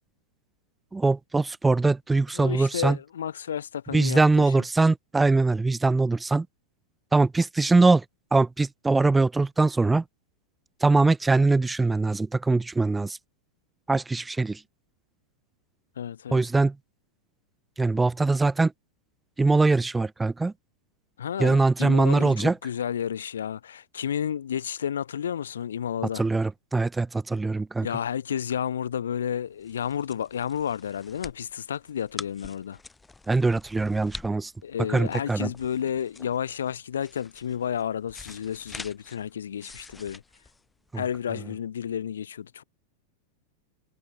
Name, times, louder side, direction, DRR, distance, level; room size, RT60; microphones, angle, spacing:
voice 1, 0.9-3.0 3.9-6.5 7.1-8.0 8.3-10.0 10.8-13.2 13.9-14.6 16.3-16.7 17.8-18.7 19.4-20.5 21.4-22.6 26.1-27.9 33.3-34.5 34.9-35.5 40.9-41.0, right 3 dB, 10° right, 0.9 m, -22 dB
voice 2, 2.3-4.6 16.0-16.4 21.2-26.2 27.8-32.8 34.6-40.2 40.9-42.6, left 9 dB, 75° left, 3.1 m, -31 dB
sound 1, 29.3-41.3, left 3 dB, 10° left, 4.7 m, -46 dB
figure-of-eight pair, 95°, 0 cm